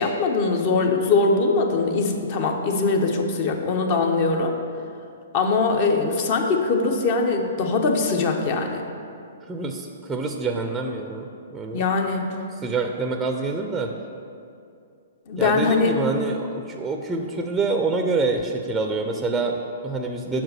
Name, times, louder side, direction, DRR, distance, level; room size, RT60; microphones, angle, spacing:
voice 1, 0.0-4.5 5.3-8.8 11.7-12.3 15.3-15.9, left 4 dB, 45° left, 3 dB, 0.8 m, -22 dB
voice 2, 9.5-11.8 12.5-13.9 15.4-20.4, right 3 dB, 10° right, 3 dB, 0.5 m, -26 dB
5.9 x 4.6 x 6.5 m, 2.5 s
hypercardioid pair, 130°, 0 cm